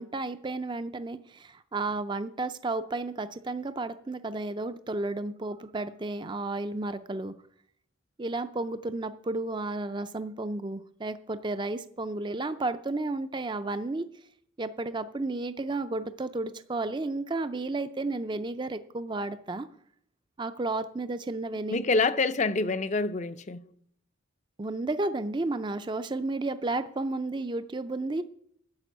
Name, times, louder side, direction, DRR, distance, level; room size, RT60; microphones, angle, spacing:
voice 1, 0.0-7.3 8.2-14.1 14.6-19.7 20.4-21.8 24.6-28.2, right 2 dB, 20° right, 0.4 m, -32 dB
voice 2, 21.7-23.7, left 3 dB, 35° left, 0.5 m, -26 dB
10.5 x 6.8 x 9.2 m
head